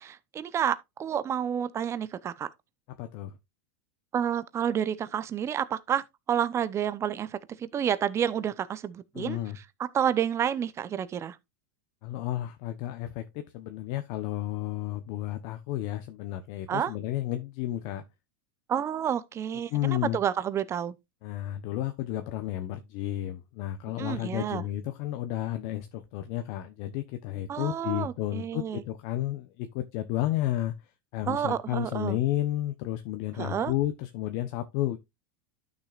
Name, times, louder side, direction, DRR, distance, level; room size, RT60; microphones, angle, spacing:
voice 1, 0.0-2.5 4.1-6.0 6.3-9.4 9.9-11.4 16.7-16.9 18.7-20.9 24.0-24.7 27.5-28.8 31.3-32.2 33.4-33.7, right 9 dB, 25° right, 0.8 m, -29 dB
voice 2, 3.0-3.3 9.1-9.6 12.0-18.0 19.7-20.2 21.2-30.7 31.1-35.0, left 14 dB, 50° left, 1.0 m, -32 dB
12.0 x 6.6 x 2.5 m
supercardioid pair, 140°, 12 cm